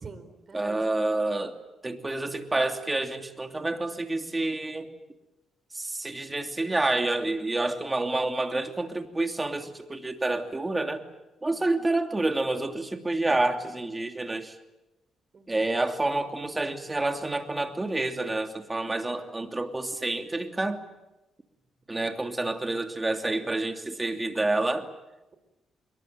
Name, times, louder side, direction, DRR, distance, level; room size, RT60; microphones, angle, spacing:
voice 1, 0.0-0.8 11.4-11.6 13.6-13.7 15.3-15.6, right 4 dB, 40° right, 10 dB, 4.6 m, -45 dB
voice 2, 0.5-1.6 1.8-4.9 5.7-11.0 11.4-14.5 15.5-20.8 21.9-24.9, right 2 dB, 15° right, 5 dB, 2.9 m, -28 dB
27.0 x 22.5 x 9.1 m, 1.0 s
cardioid pair, 90°, 0 cm